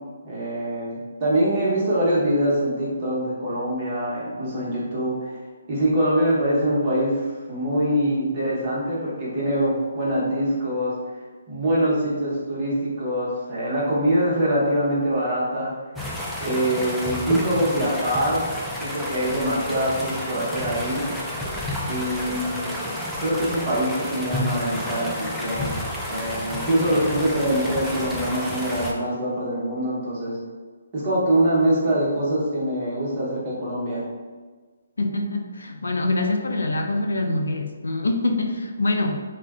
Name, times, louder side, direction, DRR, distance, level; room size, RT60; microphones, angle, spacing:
voice 1, 0.2-5.4 5.7-10.9 11.5-15.7 16.4-18.5 18.8-21.0 21.9-22.9 23.2-25.7 26.0-30.4 30.9-34.0, right 1 dB, 30° right, -7 dB, 1.0 m, -24 dB
sound 1, 15.9-28.9, equal, ahead, 0.3 m, -30 dB
voice 2, 35.0-39.2, left 2 dB, 90° left, 5 dB, 0.4 m, -25 dB
2.4 x 2.2 x 3.6 m, 1.4 s
hypercardioid pair, 160°, 0 cm